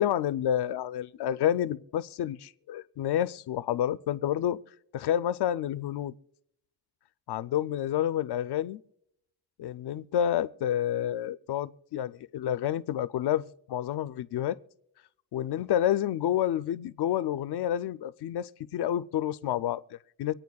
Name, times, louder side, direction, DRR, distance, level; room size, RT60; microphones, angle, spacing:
voice 1, 0.0-4.6 4.9-6.1 7.3-8.8 9.6-14.6 15.3-20.3, left 11 dB, 85° left, 0.5 m, -29 dB
25.0 x 8.9 x 2.3 m
cardioid pair, 55°, 38 cm